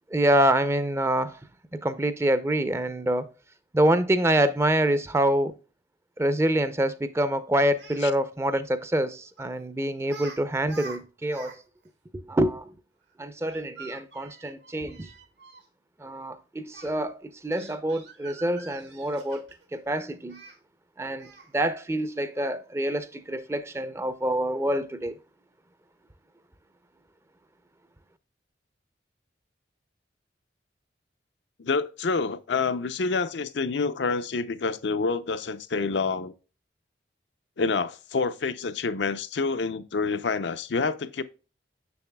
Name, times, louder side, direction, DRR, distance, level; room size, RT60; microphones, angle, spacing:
voice 1, 0.1-1.4 1.8-3.3 3.7-5.5 6.2-11.6 12.1-12.7 13.2-15.1 16.0-20.4 21.0-25.2, right 1 dB, 15° right, 0.5 m, -26 dB
Speech, 7.6-8.0 9.4-9.6 10.0-10.4 10.6-11.6 11.8-11.9 13.5-15.6 16.7-16.9 17.5-19.7 20.3-20.6 21.2-21.5, right 4 dB, 85° right, 1.8 m, -46 dB
voice 2, 31.6-36.3 37.6-41.2, left 4 dB, 75° left, 0.5 m, -27 dB
7.0 x 6.5 x 2.2 m
head